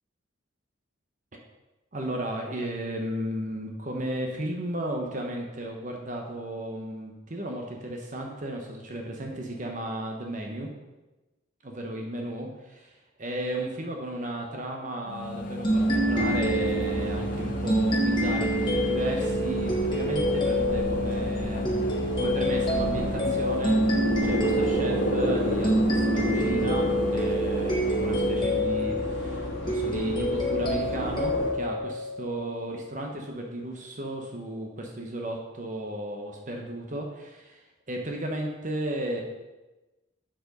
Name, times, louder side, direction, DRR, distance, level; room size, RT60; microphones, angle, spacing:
voice 1, 1.9-10.7 11.8-12.8 13.2-21.9 22.2-37.6 37.9-39.2, right 1 dB, 40° right, 1 dB, 0.9 m, -34 dB
sound 1, 15.1-28.6, left 1 dB, 40° left, 0.6 m, -34 dB
sound 2, 15.6-32.8, right 1 dB, 20° left, 1.5 m, -27 dB
sound 3, 15.7-31.5, left 1 dB, 65° left, 1.6 m, -32 dB
7.4 x 4.6 x 5.3 m, 1.1 s
head